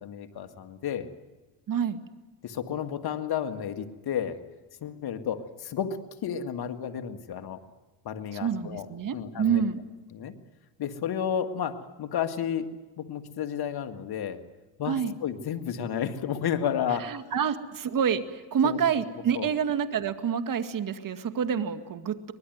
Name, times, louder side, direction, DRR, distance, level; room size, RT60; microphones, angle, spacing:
voice 1, 0.0-1.1 2.4-4.4 4.8-7.6 8.0-8.9 9.1-9.6 10.1-10.4 10.8-12.7 13.0-14.4 14.8-17.3 18.6-18.8 19.3-19.5, left 8 dB, 55° left, 7 dB, 2.1 m, -32 dB
voice 2, 1.7-2.0 8.3-9.8 14.9-15.1 17.1-22.3, right 7 dB, 50° right, 9 dB, 1.9 m, -28 dB
23.5 x 20.0 x 9.3 m, 1.2 s
supercardioid pair, 80°, 43 cm